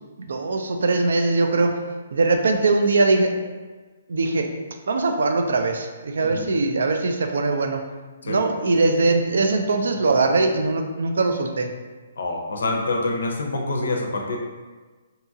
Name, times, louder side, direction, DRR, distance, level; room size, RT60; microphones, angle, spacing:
voice 1, 0.2-1.8 2.1-3.3 4.1-4.5 4.9-7.8 8.2-11.7, right 3 dB, 75° right, 5 dB, 0.3 m, -21 dB
voice 2, 12.2-14.4, left 2 dB, 80° left, 1 dB, 0.5 m, -26 dB
2.7 x 2.3 x 2.7 m, 1.3 s
hypercardioid pair, 170°, 0 cm